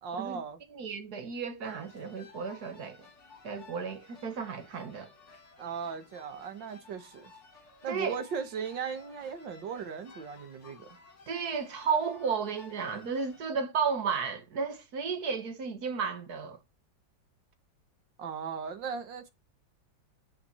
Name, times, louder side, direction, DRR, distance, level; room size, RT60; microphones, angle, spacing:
voice 1, 0.0-0.6 5.6-7.3 7.8-11.0 18.2-19.3, right 6 dB, 70° right, 2.0 m, -37 dB
voice 2, 0.7-3.0 3.4-5.1 7.9-8.1 11.3-16.6, right 5 dB, 55° right, 1.8 m, -33 dB
sound 1, 1.6-13.4, left 3 dB, 40° left, 2.1 m, -55 dB
8.8 x 5.6 x 6.9 m
omnidirectional pair, 2.1 m